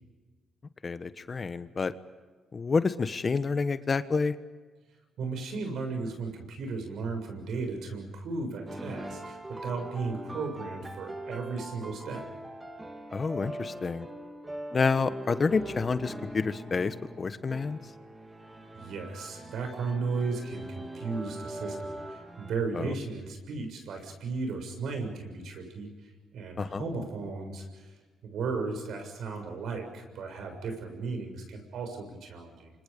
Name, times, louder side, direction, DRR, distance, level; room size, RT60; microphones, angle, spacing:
voice 1, 0.8-1.9 2.5-4.3 13.1-14.1 14.7-17.8 22.7-22.9 26.6-26.8, left 4 dB, 35° left, 12 dB, 1.2 m, -28 dB
voice 2, 5.2-12.3 18.7-27.9 28.2-32.7, right 4 dB, 70° right, 4 dB, 7.1 m, -35 dB
sound 1, 8.7-22.5, right 1 dB, 15° right, 3.2 m, -42 dB
29.5 x 25.5 x 5.3 m, 1.4 s
cardioid pair, 90°, 0 cm